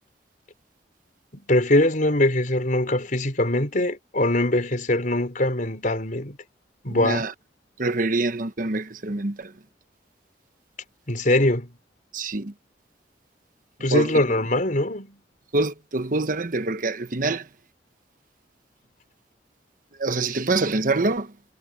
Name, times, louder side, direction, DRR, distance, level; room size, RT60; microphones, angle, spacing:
voice 1, 1.3-6.4 6.8-7.3 11.1-11.7 13.8-15.2, left 1 dB, 50° left, 4.6 m, -22 dB
voice 2, 6.9-7.3 7.8-9.5 12.1-12.5 13.9-14.2 15.5-17.5 20.0-21.3, right 3 dB, 50° right, 1.1 m, -25 dB
head